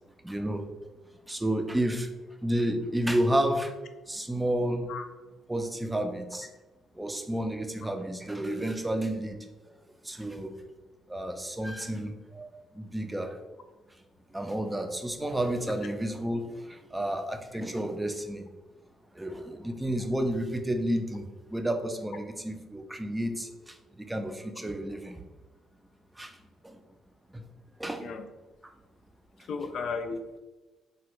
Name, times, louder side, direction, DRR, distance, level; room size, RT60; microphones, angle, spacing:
voice 1, 0.2-0.6 1.3-2.1 2.4-3.7 4.1-4.9 5.5-6.5 7.0-9.4 10.0-10.5 11.1-12.5 12.8-13.3 14.3-18.5 19.2-21.2 21.5-23.5 24.1-25.2 26.2-26.3 27.8-28.0, right 1 dB, 10° right, 5 dB, 0.4 m, -30 dB
voice 2, 29.5-30.4, left 4 dB, 70° left, 7 dB, 0.3 m, -34 dB
3.2 x 2.3 x 3.0 m, 1.2 s
cardioid pair, 90°, 0 cm